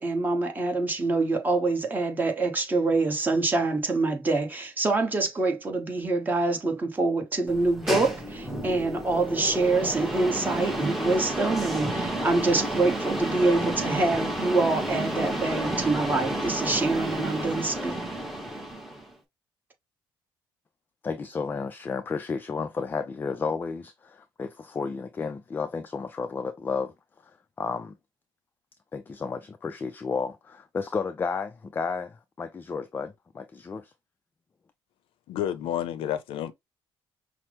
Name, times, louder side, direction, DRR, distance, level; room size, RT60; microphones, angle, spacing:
voice 1, 0.0-18.0, right 3 dB, 20° right, 1.1 m, -25 dB
sound 1, 7.5-19.1, right 1 dB, ahead, 0.9 m, -31 dB
voice 2, 21.0-26.9 27.2-28.0 28.9-33.9, left 5 dB, 20° left, 0.3 m, -32 dB
voice 3, 35.3-36.5, left 10 dB, 75° left, 0.6 m, -30 dB
5.6 x 2.0 x 3.1 m
cardioid pair, 145°, 9 cm